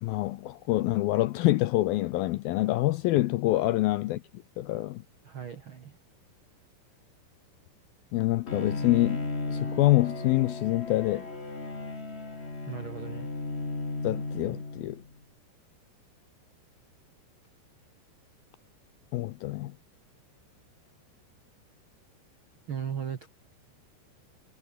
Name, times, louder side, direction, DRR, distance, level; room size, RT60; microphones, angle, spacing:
voice 1, 0.0-4.2 4.6-5.0 8.1-11.3 14.0-15.0 19.1-19.7, left 17 dB, 80° left, 2.2 m, -26 dB
voice 2, 5.2-5.9 12.6-13.3 22.7-23.3, right 8 dB, 85° right, 1.1 m, -37 dB
Bowed string instrument, 8.5-15.1, left 3 dB, 15° left, 2.6 m, -35 dB
omnidirectional pair, 5.0 m